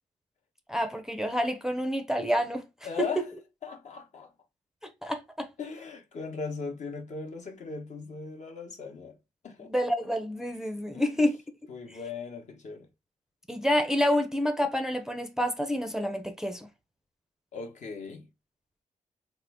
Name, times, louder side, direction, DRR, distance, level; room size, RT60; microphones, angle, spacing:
voice 1, 0.7-2.6 3.0-3.3 5.0-5.5 9.6-11.4 13.5-16.7, equal, 5° right, 0.5 m, -28 dB
voice 2, 2.8-3.3 3.6-4.3 5.6-9.2 9.4-9.7 10.9-11.2 11.7-12.9 17.5-18.3, left 5 dB, 60° left, 0.9 m, -38 dB
3.6 x 2.1 x 3.3 m
cardioid pair, 85°, 14 cm